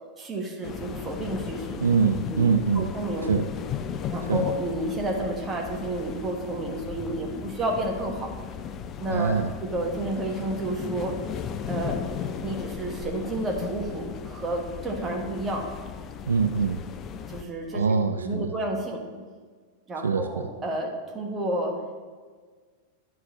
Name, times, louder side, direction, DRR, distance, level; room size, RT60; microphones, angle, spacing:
voice 1, 0.2-1.8 2.3-2.4 2.7-3.3 4.1-8.3 9.0-11.1 11.6-12.0 12.4-15.6 17.3-19.0 19.9-21.7, right 1 dB, 20° right, 0 dB, 1.4 m, -31 dB
sound 1, 0.6-17.4, left 7 dB, 30° left, 0.4 m, -36 dB
voice 2, 1.8-2.9 3.3-3.4 4.3-4.5 9.1-9.5 16.3-16.8 17.7-18.5 20.0-20.4, right 5 dB, 70° right, 7 dB, 0.3 m, -23 dB
10.5 x 4.1 x 3.9 m, 1.5 s
figure-of-eight pair, 90°, 0 cm